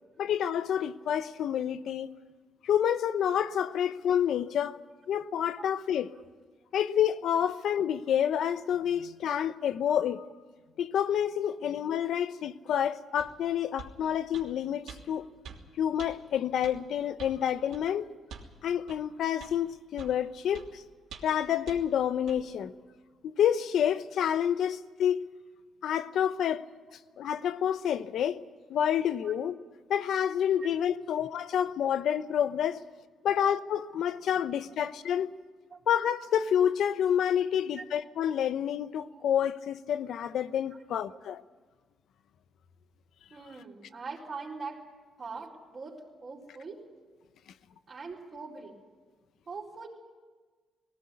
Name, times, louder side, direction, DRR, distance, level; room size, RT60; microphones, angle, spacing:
voice 1, 0.2-2.1 2.6-4.8 5.1-6.1 6.7-10.3 10.8-15.2 15.8-18.1 18.6-20.8 21.2-22.7 23.2-25.2 25.8-26.6 27.2-28.4 28.7-29.5 29.9-32.8 33.2-35.3 35.9-41.4, left 9 dB, 70° left, 0.9 m, -28 dB
sound 1, 13.2-13.3 13.8-14.0 14.3-14.5 14.9-15.0 15.4-15.6 16.0-16.1 16.6-16.8 17.2-17.4 17.7-17.9 18.3-18.5 18.9-19.0 19.4-19.6 20.0-20.2 20.5-20.7 21.1-21.4 21.7-21.8 22.3-22.4, right 6 dB, 75° right, 3.0 m, -45 dB
voice 2, 30.6-31.0 32.7-32.8 33.3-33.4 35.7-35.9 37.7-37.8 39.1-39.2 41.1-41.2 43.3-44.8 45.2-46.0 46.2-46.8 47.9-48.8 49.5-49.9, right 4 dB, 40° right, 4.3 m, -42 dB
19.0 x 17.0 x 9.7 m
cardioid pair, 90°, 0 cm